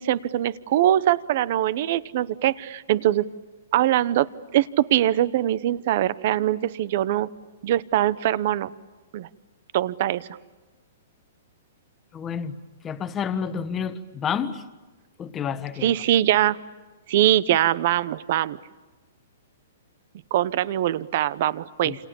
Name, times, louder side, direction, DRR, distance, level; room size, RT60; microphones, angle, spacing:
voice 1, 0.0-3.3 3.7-7.3 7.6-8.7 9.1-9.3 9.7-10.3 15.8-16.6 17.1-18.6 20.3-22.0, right 13 dB, 45° right, 18 dB, 1.0 m, -22 dB
voice 2, 12.1-12.5 12.8-14.6 15.2-15.9 21.8-22.1, left 7 dB, 15° left, 11 dB, 1.3 m, -29 dB
29.5 x 28.5 x 7.1 m, 1.2 s
hypercardioid pair, 165°, 0 cm